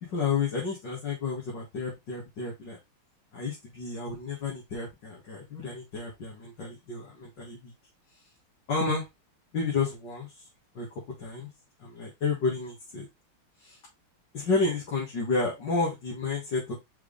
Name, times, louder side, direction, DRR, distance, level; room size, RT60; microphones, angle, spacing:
voice 1, 0.0-2.8 3.3-7.7 8.7-9.1 9.5-10.3 10.7-10.9 11.2-11.5 11.8-13.1 13.6-13.8 14.3-16.7, left 4 dB, 55° left, -4 dB, 2.6 m, -31 dB
5.9 x 4.8 x 3.3 m, 0.21 s
omnidirectional pair, 2.4 m